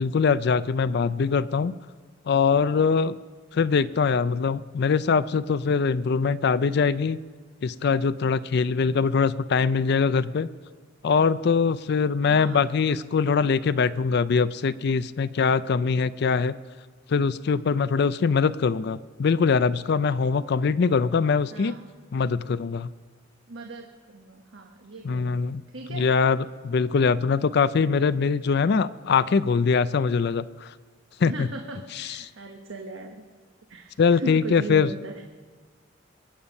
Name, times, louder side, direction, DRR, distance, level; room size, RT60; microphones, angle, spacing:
voice 1, 0.0-1.8 2.3-3.2 3.5-7.2 7.6-10.5 11.0-16.6 17.1-21.8 22.1-22.9 25.0-25.6 25.9-30.7 31.2-31.5 34.0-34.9, left 5 dB, 60° left, 15 dB, 0.4 m, -22 dB
voice 2, 12.3-12.7 21.5-21.9 23.5-25.4 25.7-26.1 31.2-33.2 33.7-35.2, right 2 dB, 85° right, 3 dB, 1.2 m, -38 dB
23.0 x 8.8 x 5.3 m, 1.4 s
head